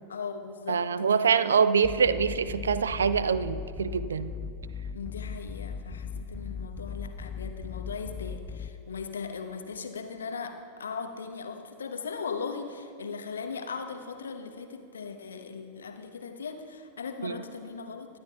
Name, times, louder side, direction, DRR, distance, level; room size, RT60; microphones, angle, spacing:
voice 1, 0.1-1.3 4.9-18.2, left 5 dB, 70° left, 7 dB, 0.9 m, -38 dB
voice 2, 0.7-4.3 17.2-17.4, right 6 dB, 70° right, 14 dB, 0.4 m, -25 dB
sound 1, 1.8-8.7, left 6 dB, 25° left, 0.4 m, -38 dB
22.5 x 10.5 x 2.3 m, 2.5 s
figure-of-eight pair, 90°, 0 cm